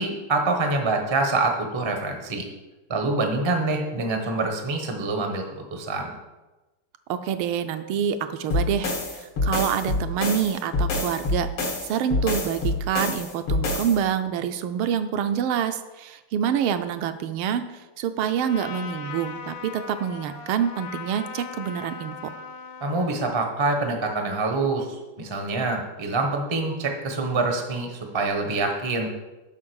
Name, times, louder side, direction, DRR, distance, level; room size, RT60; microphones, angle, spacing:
voice 1, 0.0-2.5 2.9-5.4 5.7-6.2 22.8-29.1, right 3 dB, 35° right, 3 dB, 0.4 m, -25 dB
voice 2, 7.1-11.5 11.9-22.3, right 8 dB, 80° right, 9 dB, 1.4 m, -27 dB
sound 1, 8.5-14.0, left 2 dB, 85° left, 2.4 m, -26 dB
Trumpet, 18.4-23.3, left 5 dB, 65° left, 1.1 m, -39 dB
7.4 x 5.2 x 6.3 m, 1.1 s
omnidirectional pair, 2.4 m